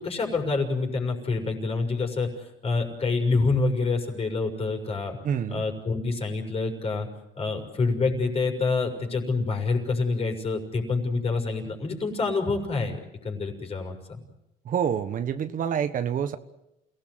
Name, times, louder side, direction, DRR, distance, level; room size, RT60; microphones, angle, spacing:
voice 1, 0.0-2.3 2.6-5.2 5.5-7.1 7.4-14.2, left 3 dB, 35° left, 3 dB, 6.3 m, -27 dB
voice 2, 5.2-5.6 14.7-16.4, right 8 dB, 50° right, 10 dB, 1.4 m, -27 dB
29.0 x 18.0 x 8.0 m, 0.88 s
cardioid pair, 110°, 17 cm